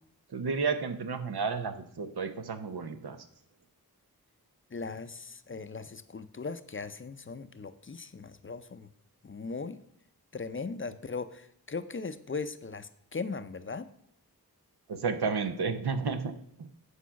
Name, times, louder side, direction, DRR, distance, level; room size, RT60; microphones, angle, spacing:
voice 1, 0.3-3.2 14.9-16.3 16.6-16.7, right 5 dB, 85° right, 8 dB, 0.9 m, -32 dB
voice 2, 4.7-8.9 9.2-9.8 10.3-13.9, left 4 dB, 35° left, 12 dB, 0.5 m, -38 dB
8.4 x 5.0 x 5.7 m, 0.72 s
wide cardioid pair, 85°, 38 cm